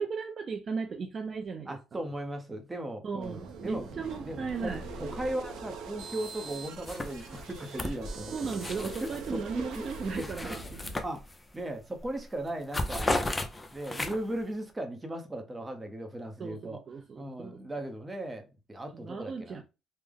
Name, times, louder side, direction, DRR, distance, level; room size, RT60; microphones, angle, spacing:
voice 1, 0.0-2.0 3.0-4.8 8.3-10.6 16.4-17.6 18.9-19.6, right 5 dB, 40° right, 0.4 m, -36 dB
voice 2, 1.7-9.9 10.1-10.6 11.0-11.2 11.5-13.2 13.7-16.8 17.1-19.6, right 1 dB, 15° right, 0.7 m, -37 dB
sound 1, 3.2-11.0, right 4 dB, 85° right, 0.7 m, -42 dB
sound 2, 6.2-6.6 6.8-9.3 9.7-11.6 12.0-12.2 12.5-14.4, left 1 dB, 15° left, 0.5 m, -35 dB
3.3 x 2.0 x 3.6 m
cardioid pair, 110°, 0 cm